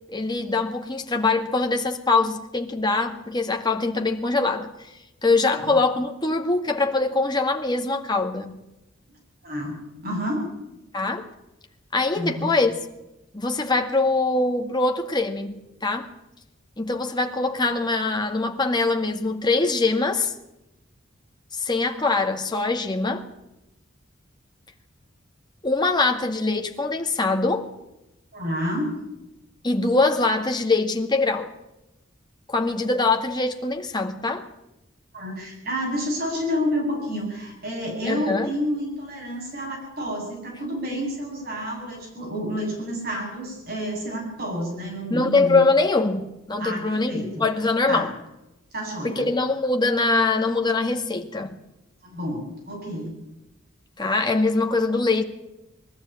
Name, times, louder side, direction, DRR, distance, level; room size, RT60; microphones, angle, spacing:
voice 1, 0.1-4.9 5.2-8.6 10.9-11.3 11.9-12.8 13.3-15.5 15.8-16.1 16.8-20.3 21.5-23.3 25.6-27.7 29.6-31.5 32.5-34.5 38.0-38.5 45.1-48.1 49.0-51.6 54.0-55.2, left 3 dB, 20° left, 1.9 m, -23 dB
voice 2, 9.4-10.4 12.2-12.4 28.3-29.0 35.1-45.6 46.6-47.4 47.9-48.1 48.7-49.3 52.0-53.1, equal, 50° right, 8.0 m, -29 dB
22.0 x 13.5 x 9.0 m
head